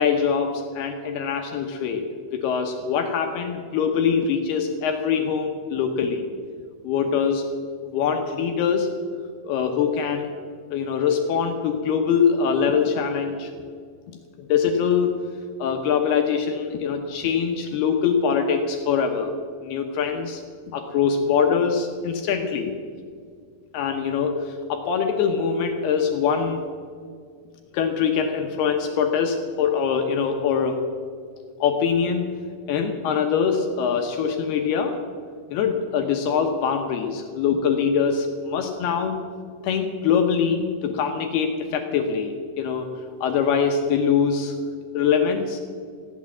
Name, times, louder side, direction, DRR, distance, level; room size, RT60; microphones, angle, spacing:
voice 1, 0.0-2.1 2.3-6.3 6.8-7.5 7.8-8.9 9.4-10.3 10.7-13.5 14.4-15.2 15.6-19.4 19.6-20.4 20.7-22.7 23.7-26.6 27.7-30.8 31.6-32.4 32.7-35.0 35.5-39.2 39.6-42.9 43.2-44.6 44.9-45.6, left 6 dB, 75° left, 4 dB, 2.4 m, -23 dB
15.5 x 10.5 x 7.3 m, 2.1 s
omnidirectional pair, 5.6 m